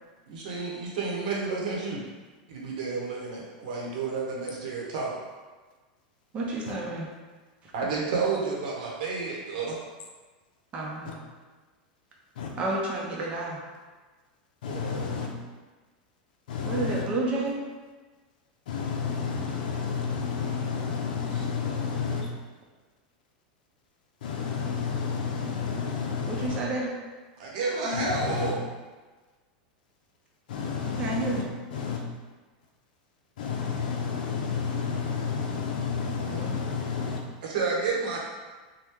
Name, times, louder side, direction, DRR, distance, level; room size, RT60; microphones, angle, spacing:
voice 1, 0.3-2.0 2.5-5.1 7.7-9.8 14.7-15.1 21.3-21.7 27.4-28.6 37.4-38.2, right 4 dB, 70° right, -3 dB, 0.9 m, -30 dB
voice 2, 6.3-7.1 7.6-8.1 10.7-11.3 12.6-13.6 16.6-17.6 26.3-26.9 30.8-31.5 36.2-36.6, right 2 dB, 25° right, -3 dB, 0.6 m, -31 dB
voice 3, 14.6-15.3 16.5-17.1 18.7-22.3 24.2-26.6 27.9-28.5 30.5-31.4 31.7-32.0 33.4-37.2, left 6 dB, 85° left, 0 dB, 0.5 m, -31 dB
3.0 x 2.2 x 3.5 m, 1.3 s
supercardioid pair, 140°, 5 cm